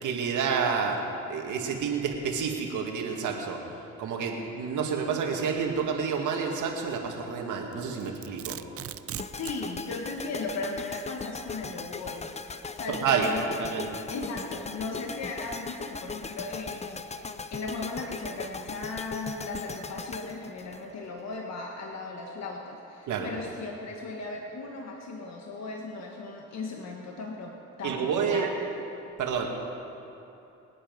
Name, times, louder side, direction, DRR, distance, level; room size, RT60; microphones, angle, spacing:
voice 1, 0.0-3.6 4.0-8.6 12.9-13.3 13.6-13.9 23.1-23.3 27.8-28.5 29.2-29.5, right 6 dB, 80° right, 1 dB, 2.2 m, -29 dB
Domestic sounds home sounds, 7.7-9.6, right 11 dB, 50° right, 0.6 m, -39 dB
sound 1, 9.2-21.4, left 4 dB, 20° left, 0.6 m, -39 dB
voice 2, 9.3-28.5, left 3 dB, 60° left, 0 dB, 1.6 m, -37 dB
25.0 x 8.9 x 5.5 m, 2.9 s
cardioid pair, 90°, 30 cm